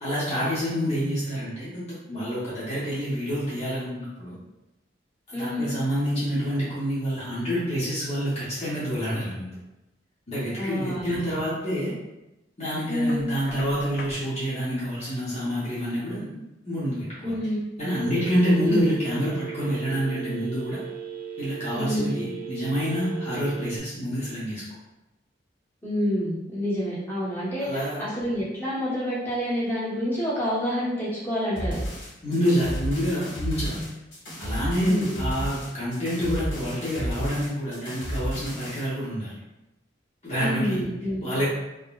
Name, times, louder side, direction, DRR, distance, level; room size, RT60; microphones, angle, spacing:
voice 1, 0.0-4.4 5.3-9.5 10.3-11.9 12.6-16.4 16.6-17.3 17.8-20.8 21.4-24.6 27.6-28.0 32.2-33.8 34.4-39.3 40.2-40.8 41.2-41.4, equal, 35° left, -9 dB, 0.8 m, -27 dB
voice 2, 5.3-5.7 10.6-11.4 12.9-13.3 17.2-17.6 18.6-18.8 21.7-22.1 25.8-31.8 34.8-35.2 40.4-41.2, equal, 15° left, -9 dB, 1.0 m, -28 dB
Knock, 13.1-14.2, left 2 dB, 55° left, 0.3 m, -41 dB
Telephone, 17.8-23.8, right 8 dB, 50° right, 0.3 m, -37 dB
sound 1, 31.6-38.9, equal, 75° left, 1.3 m, -32 dB
3.5 x 2.1 x 2.3 m, 0.97 s
head